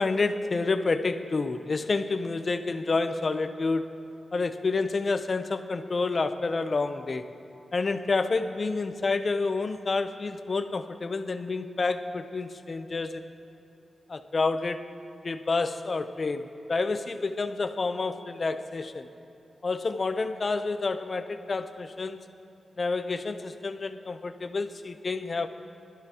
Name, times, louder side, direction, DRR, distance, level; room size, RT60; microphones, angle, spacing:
voice 1, 0.0-4.0 4.3-7.3 7.7-13.3 14.1-14.9 15.2-19.1 19.6-22.2 22.8-25.5, left 3 dB, 45° left, 9 dB, 0.7 m, -29 dB
21.5 x 13.0 x 2.9 m, 3.0 s
wide cardioid pair, 95°, 0 cm